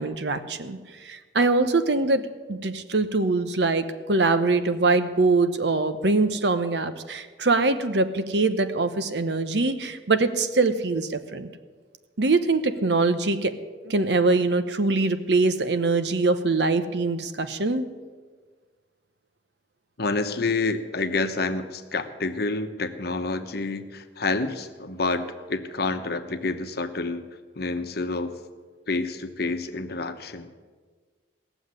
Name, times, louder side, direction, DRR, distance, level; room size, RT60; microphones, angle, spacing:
voice 1, 0.0-11.5 12.2-13.5 13.8-17.9, right 3 dB, 70° right, 10 dB, 0.9 m, -23 dB
voice 2, 20.0-27.2 27.5-28.3 28.9-30.5, left 3 dB, 60° left, 8 dB, 1.0 m, -28 dB
18.0 x 7.2 x 9.6 m, 1.5 s
head